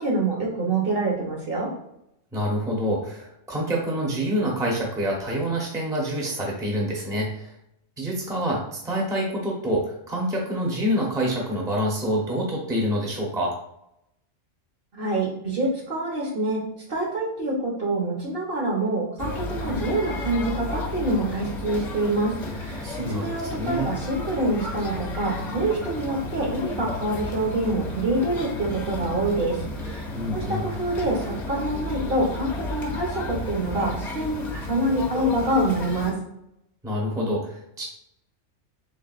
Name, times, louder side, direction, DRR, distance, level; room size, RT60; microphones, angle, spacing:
voice 1, 0.0-1.7 14.9-16.6 16.9-36.1, right 2 dB, 50° right, -3 dB, 1.2 m, -26 dB
voice 2, 2.3-7.5 8.0-13.5 22.8-23.9 30.1-30.7 36.8-37.8, equal, 5° right, -2 dB, 0.7 m, -27 dB
sound 1, 19.2-36.1, left 2 dB, 40° left, 0.9 m, -33 dB
3.9 x 3.5 x 2.5 m, 0.80 s
omnidirectional pair, 1.3 m